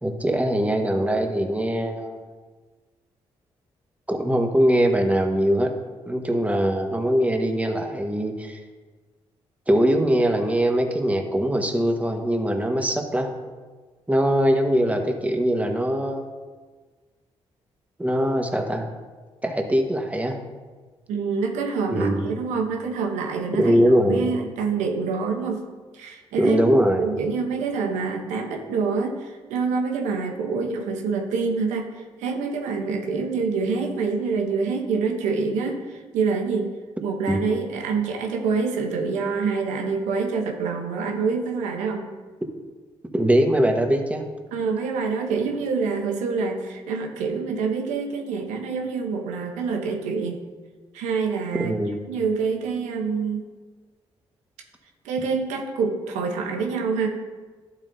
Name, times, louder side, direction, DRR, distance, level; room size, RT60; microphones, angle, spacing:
voice 1, 0.0-2.2 4.1-5.7 6.0-8.6 9.7-13.3 14.1-16.3 18.0-18.9 19.4-20.4 21.9-22.3 23.6-24.3 26.4-27.1 37.3-37.4 43.1-44.2 51.6-52.0, equal, 10° right, 3 dB, 1.3 m, -22 dB
voice 2, 21.1-23.8 24.1-25.6 25.9-26.6 27.0-36.7 37.0-42.1 44.5-50.4 50.9-51.7 52.1-53.4 55.0-57.1, right 5 dB, 85° right, 3 dB, 0.9 m, -26 dB
11.5 x 7.4 x 2.7 m, 1.4 s
supercardioid pair, 50°, 12 cm